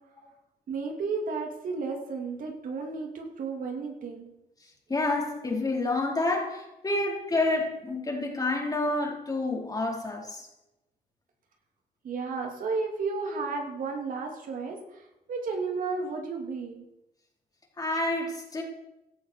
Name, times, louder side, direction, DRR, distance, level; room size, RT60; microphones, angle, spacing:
voice 1, 0.7-4.3 12.0-16.8, right 4 dB, 60° right, 2 dB, 3.1 m, -33 dB
voice 2, 4.9-10.5 17.8-18.6, left 2 dB, 25° left, -1 dB, 4.5 m, -28 dB
16.0 x 12.5 x 4.8 m, 0.90 s
cardioid pair, 95°, 16 cm